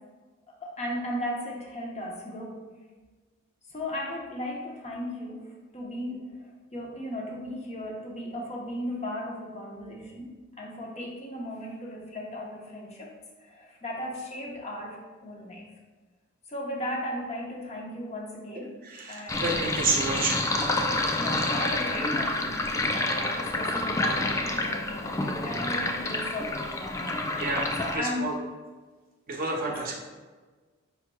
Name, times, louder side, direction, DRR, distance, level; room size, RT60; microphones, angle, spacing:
voice 1, 0.6-2.6 3.7-10.3 10.6-13.1 13.4-15.6 16.5-18.7 19.1-19.5 21.2-27.5 27.8-28.4 29.7-29.8, left 1 dB, 35° left, -1 dB, 0.8 m, -36 dB
voice 2, 18.8-20.5 27.4-28.3 29.3-29.9, right 3 dB, 45° right, 0 dB, 0.7 m, -29 dB
Sink (filling or washing), 19.3-28.0, left 2 dB, 15° left, 0.3 m, -28 dB
5.2 x 4.6 x 2.2 m, 1.3 s
head